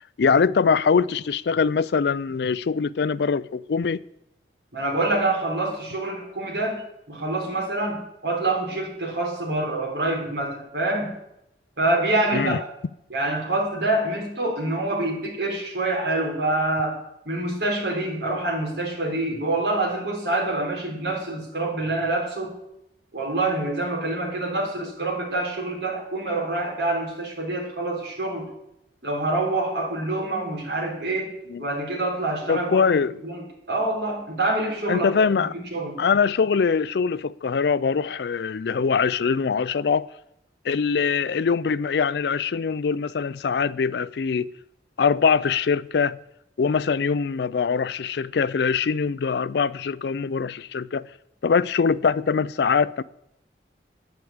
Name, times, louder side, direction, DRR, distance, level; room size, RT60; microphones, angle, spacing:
voice 1, 0.2-4.0 12.3-12.6 31.5-31.6 32.5-33.2 34.9-35.5 36.0-40.1 40.7-44.5 45.0-46.2 46.6-51.1 51.4-53.0, left 5 dB, 60° left, 0.4 m, -23 dB
voice 2, 4.7-11.2 11.8-12.6 13.1-17.0 17.2-22.5 23.1-28.5 29.0-31.3 31.6-32.9 33.2-36.0, right 2 dB, 65° right, 4.2 m, -26 dB
9.9 x 8.1 x 8.7 m
head